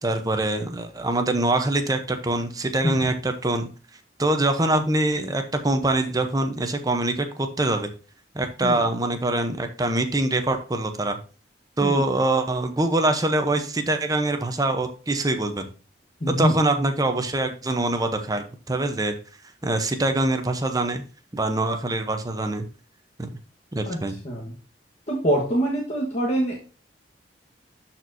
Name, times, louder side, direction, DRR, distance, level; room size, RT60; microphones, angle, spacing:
voice 1, 0.0-3.7 4.2-7.9 8.3-11.2 11.8-15.7 16.3-19.2 19.6-21.0 21.3-22.7 23.2-23.3 23.7-24.2, right 2 dB, 20° right, 7 dB, 0.8 m, -24 dB
voice 2, 16.2-16.5 23.9-24.0 24.2-24.5 25.1-26.6, equal, 40° left, -3 dB, 1.3 m, -24 dB
12.5 x 4.4 x 2.7 m, 0.36 s
head